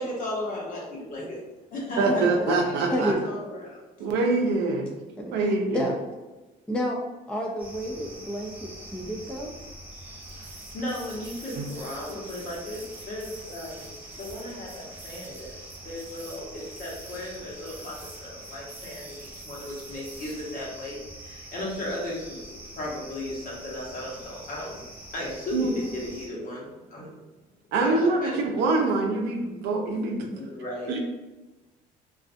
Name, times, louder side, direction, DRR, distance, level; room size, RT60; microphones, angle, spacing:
voice 1, 0.0-1.4 1.7-2.1 2.4-3.8 10.7-13.9 14.2-15.6 15.8-19.0 19.4-21.0 21.5-22.2 22.5-24.9 25.1-27.1 27.8-28.3 30.4-30.9, left 1 dB, 50° left, -4 dB, 0.9 m, -35 dB
voice 2, 2.0-3.1 4.0-4.9 5.3-5.9 11.6-11.7 25.5-25.7 27.7-30.3 30.9-31.0, right 3 dB, 85° right, 2 dB, 0.5 m, -24 dB
voice 3, 5.2-5.9 6.7-7.0 7.3-9.5, equal, 5° left, -1 dB, 0.3 m, -30 dB
sound 1, 7.6-26.3, right 1 dB, 10° right, 0.7 m, -44 dB
sound 2, 10.0-20.6, right 3 dB, 45° right, 0.7 m, -49 dB
2.5 x 2.3 x 2.4 m, 1.1 s
cardioid pair, 110°, 17 cm